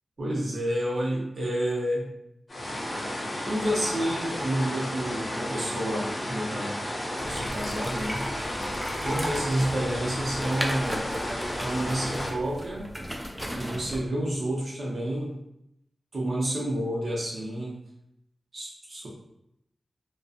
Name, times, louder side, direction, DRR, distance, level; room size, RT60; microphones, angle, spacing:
voice 1, 0.2-2.1 3.5-6.8 7.2-8.2 9.0-11.1 11.6-12.9 13.5-15.4 16.1-17.8 18.5-19.1, right 1 dB, 70° right, -4 dB, 0.8 m, -29 dB
sound 1, 2.5-12.3, left 1 dB, 50° left, 0.8 m, -33 dB
sound 2, 7.2-14.0, equal, 10° right, 0.4 m, -36 dB
2.4 x 2.2 x 2.5 m, 0.80 s
cardioid pair, 45°, 0 cm